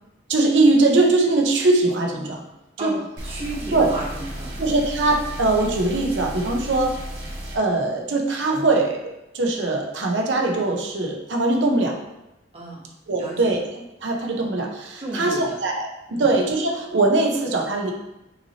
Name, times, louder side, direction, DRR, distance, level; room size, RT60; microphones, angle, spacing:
voice 1, 0.3-2.4 2.8-2.9 3.7-3.9 4.6-6.9 7.5-12.0 13.1-17.9, right 2 dB, 90° right, 1 dB, 0.7 m, -21 dB
voice 2, 3.2-4.6 12.5-12.8 13.1-13.4 15.0-15.6 16.1-16.3, right 2 dB, 35° right, -4 dB, 1.1 m, -33 dB
sound 1, 3.2-7.6, equal, 70° right, 1.2 m, -34 dB
5.7 x 2.8 x 2.8 m, 0.93 s
head